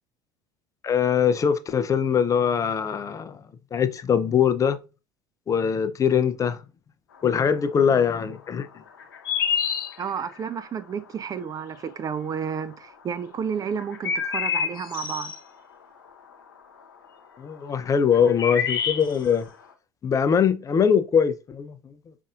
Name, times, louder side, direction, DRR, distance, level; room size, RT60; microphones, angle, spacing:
voice 1, 0.8-3.4 3.7-4.8 5.5-6.6 7.2-8.7 17.4-19.5 20.0-21.9, left 7 dB, 30° left, 0.4 m, -22 dB
sound 1, 9.0-10.3 12.3-12.4 13.7-15.4 17.8-17.9 18.1-19.4, left 7 dB, 80° left, 0.6 m, -27 dB
voice 2, 10.0-15.3, right 7 dB, 30° right, 0.4 m, -31 dB
5.2 x 2.6 x 2.4 m
hypercardioid pair, 65°, 11 cm